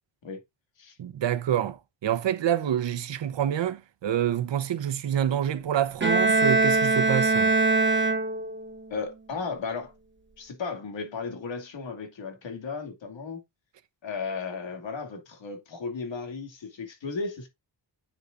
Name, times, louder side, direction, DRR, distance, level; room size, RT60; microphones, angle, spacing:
voice 1, 1.0-7.5, right 10 dB, 75° right, 1.0 m, -27 dB
Bowed string instrument, 6.0-8.7, right 3 dB, 25° right, 1.1 m, -22 dB
voice 2, 8.9-9.9 10.4-13.4 14.0-17.5, left 4 dB, 85° left, 2.5 m, -35 dB
9.7 x 6.5 x 2.6 m
wide cardioid pair, 155°, 44 cm